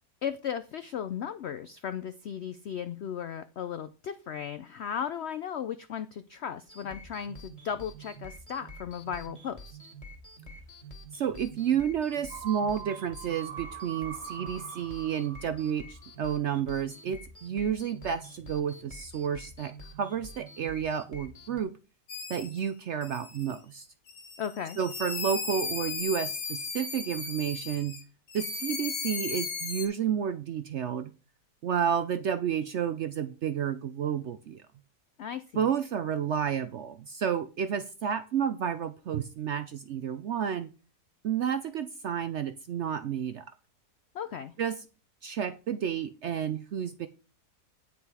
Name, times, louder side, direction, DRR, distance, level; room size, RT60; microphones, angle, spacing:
voice 1, 0.2-9.8 24.4-24.8 35.2-35.7 44.1-44.5, left 8 dB, 75° left, 12 dB, 0.6 m, -36 dB
sound 1, 6.7-21.6, right 1 dB, 20° left, 2.1 m, -48 dB
voice 2, 11.1-21.7 22.3-23.9 24.8-27.9 28.3-31.1 31.6-34.6 35.5-40.7 41.2-43.4 44.6-44.8 45.2-47.1, right 8 dB, 65° right, 11 dB, 0.7 m, -31 dB
sound 2, 12.3-16.1 16.4-16.5, right 8 dB, 85° right, 3.2 m, -43 dB
sound 3, 22.1-22.6 23.0-23.6 24.1-28.0 28.3-29.9, left 5 dB, 90° left, 2.2 m, -36 dB
9.3 x 6.1 x 4.8 m, 0.33 s
omnidirectional pair, 1.7 m